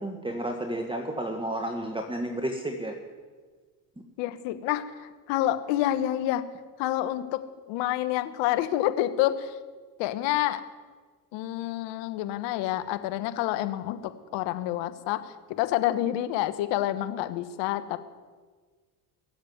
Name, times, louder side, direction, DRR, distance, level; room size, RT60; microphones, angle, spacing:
voice 1, 0.0-2.9, right 1 dB, 10° right, 4 dB, 1.7 m, -31 dB
voice 2, 4.2-6.4 6.8-7.4 7.7-9.5 10.0-10.6 11.3-18.0, left 13 dB, 70° left, 11 dB, 1.3 m, -28 dB
20.5 x 7.5 x 9.4 m, 1.5 s
hypercardioid pair, 70°, 45 cm